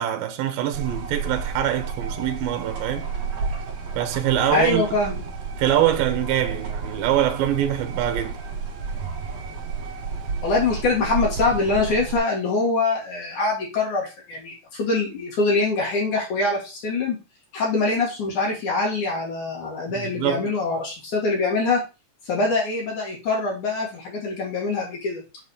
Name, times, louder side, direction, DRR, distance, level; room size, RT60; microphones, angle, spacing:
voice 1, 0.0-3.1 4.0-4.8 5.6-8.4 19.9-20.5, right 11 dB, 80° right, 2.7 m, -24 dB
sound 1, 0.7-12.2, right 5 dB, 55° right, 2.3 m, -31 dB
voice 2, 4.5-5.2 10.4-17.2 17.5-21.8 22.3-25.2, left 3 dB, 55° left, 3.6 m, -24 dB
8.8 x 4.1 x 4.9 m
omnidirectional pair, 4.2 m